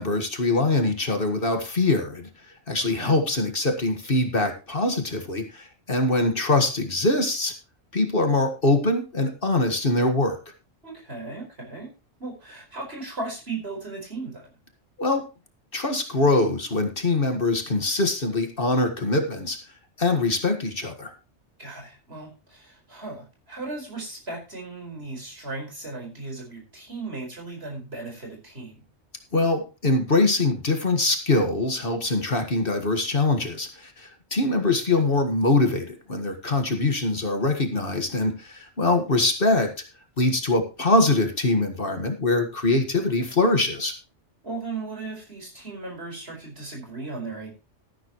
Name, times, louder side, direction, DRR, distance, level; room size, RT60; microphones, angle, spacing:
voice 1, 0.0-2.3 2.7-7.5 7.9-10.4 15.0-15.3 15.7-19.6 20.0-21.1 29.3-39.7 40.2-44.0, left 2 dB, 50° left, 5 dB, 1.9 m, -23 dB
voice 2, 10.8-11.9 12.2-14.5 21.6-28.8 43.2-43.4 44.4-47.5, right 3 dB, 55° right, 1 dB, 5.1 m, -36 dB
13.0 x 11.5 x 3.0 m, 0.30 s
omnidirectional pair, 1.2 m